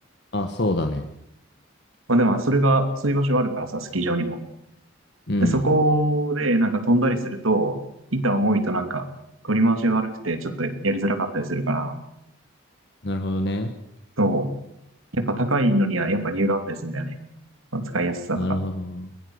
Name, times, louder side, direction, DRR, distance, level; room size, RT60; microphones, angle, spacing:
voice 1, 0.3-1.0 5.3-5.6 13.0-13.7 18.4-19.1, left 1 dB, 55° left, 6 dB, 1.4 m, -25 dB
voice 2, 2.1-4.4 5.4-7.8 8.1-9.0 9.4-11.9 14.2-14.5 15.1-17.1 17.7-18.6, right 1 dB, 90° right, 8 dB, 2.9 m, -22 dB
21.5 x 17.5 x 8.0 m, 0.79 s
head